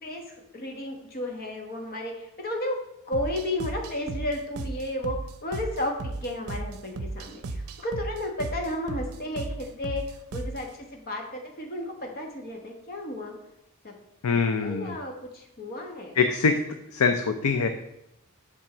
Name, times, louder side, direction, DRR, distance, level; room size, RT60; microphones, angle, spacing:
voice 1, 0.0-2.8 3.1-5.2 5.4-13.3 13.8-13.9 14.3-16.1, left 1 dB, 45° left, 2 dB, 1.1 m, -33 dB
sound 1, 3.1-10.7, right 2 dB, 75° right, 0.6 m, -36 dB
voice 2, 14.2-15.0 16.2-16.6 16.9-17.7, left 5 dB, 75° left, 7 dB, 0.5 m, -23 dB
7.4 x 3.6 x 6.0 m, 0.82 s
head